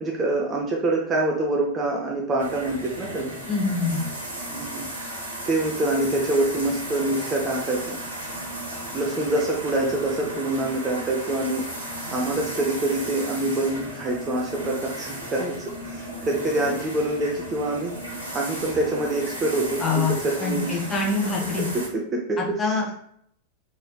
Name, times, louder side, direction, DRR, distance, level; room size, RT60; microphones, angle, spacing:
voice 1, 0.0-3.3 4.5-4.9 5.5-8.0 8.9-11.7 12.1-18.0 18.3-20.8 21.7-22.9, right 2 dB, 25° right, -1 dB, 0.5 m, -26 dB
sound 1, 2.4-21.9, right 1 dB, 85° right, 0.9 m, -35 dB
voice 2, 3.5-4.0 19.8-20.1 20.4-21.7 22.4-22.9, left 4 dB, 15° left, -2 dB, 0.8 m, -25 dB
3.2 x 2.6 x 2.2 m, 0.66 s
figure-of-eight pair, 90°, 0 cm